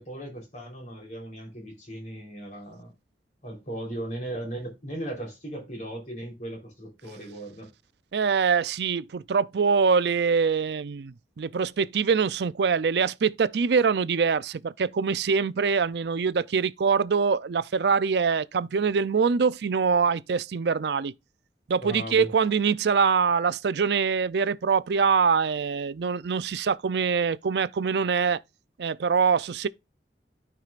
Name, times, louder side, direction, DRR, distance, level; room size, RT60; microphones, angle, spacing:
voice 1, 0.0-2.9 3.4-7.7 21.8-22.3, right 1 dB, 45° left, 3.6 m, -37 dB
voice 2, 8.1-21.1 21.7-28.4 28.8-29.7, right 5 dB, 65° right, 0.4 m, -24 dB
13.5 x 4.8 x 2.4 m
head